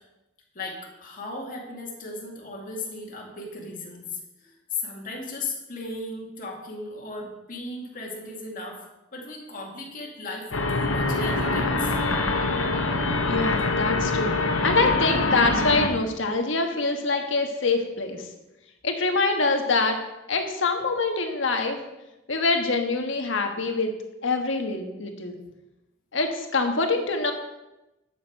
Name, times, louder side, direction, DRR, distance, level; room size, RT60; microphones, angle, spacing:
voice 1, 0.5-8.9 9.1-12.0, left 3 dB, 40° left, -1 dB, 2.2 m, -36 dB
sound 1, 10.5-15.9, left 3 dB, 85° left, 1.2 m, -24 dB
voice 2, 13.3-18.3 18.8-20.0 20.3-21.8 22.3-23.9 24.2-25.4 26.1-27.3, left 3 dB, 65° left, 5 dB, 1.5 m, -25 dB
11.5 x 7.3 x 4.7 m, 0.97 s
head